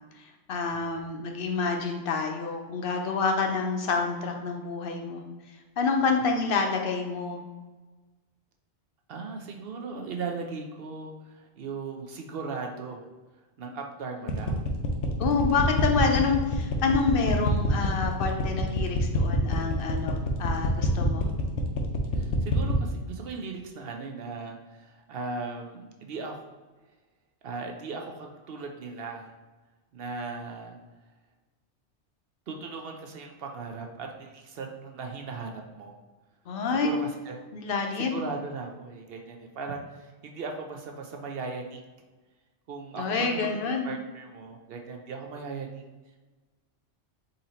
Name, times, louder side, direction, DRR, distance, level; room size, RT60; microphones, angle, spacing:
voice 1, 0.5-5.2 5.8-7.4 15.2-21.2 36.5-36.9 37.5-38.2 43.0-43.9, left 4 dB, 60° left, 3 dB, 0.8 m, -28 dB
voice 2, 9.1-13.0 13.6-14.7 22.1-26.5 27.4-29.3 29.9-30.8 32.5-36.0 36.8-37.4 38.1-41.8 42.7-43.5 43.8-45.8, right 4 dB, 65° right, 2 dB, 0.7 m, -38 dB
sound 1, 14.3-22.8, left 3 dB, 90° left, 1.0 m, -27 dB
3.9 x 2.8 x 4.1 m, 1.2 s
omnidirectional pair, 1.2 m